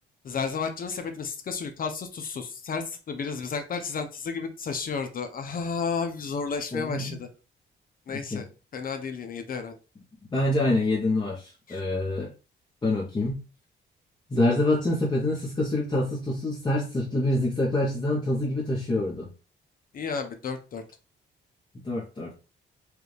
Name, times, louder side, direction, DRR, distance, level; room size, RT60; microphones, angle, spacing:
voice 1, 0.2-7.3 8.1-9.8 11.7-11.8 19.9-20.8, left 5 dB, 50° left, 7 dB, 0.6 m, -32 dB
voice 2, 6.7-7.2 8.1-8.5 10.3-12.3 12.8-13.4 14.3-19.3 21.7-22.3, left 1 dB, 25° left, -5 dB, 1.0 m, -26 dB
4.6 x 2.4 x 3.2 m, 0.33 s
cardioid pair, 115°, 19 cm